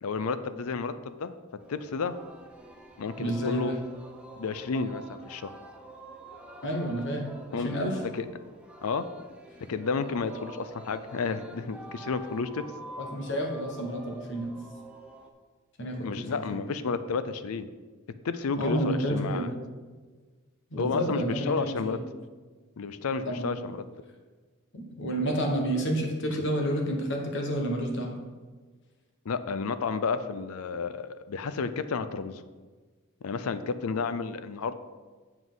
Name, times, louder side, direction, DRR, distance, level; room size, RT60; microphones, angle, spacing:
voice 1, 0.0-1.3 1.7-2.1 3.0-3.7 4.4-5.5 7.5-7.7 8.1-8.3 8.8-9.1 9.7-12.6 16.0-17.7 18.2-19.6 20.8-22.0 22.8-23.8 29.3-32.4 33.2-34.7, left 4 dB, 75° left, 12 dB, 0.5 m, -31 dB
Singing, 1.6-15.3, right 2 dB, 5° right, 0.7 m, -47 dB
voice 2, 3.2-3.8 6.6-8.0 13.0-14.5 15.8-16.7 18.6-19.5 20.7-22.0 23.3-23.5 24.7-28.1, equal, 55° left, 2 dB, 1.3 m, -30 dB
8.0 x 7.2 x 3.9 m, 1.4 s
head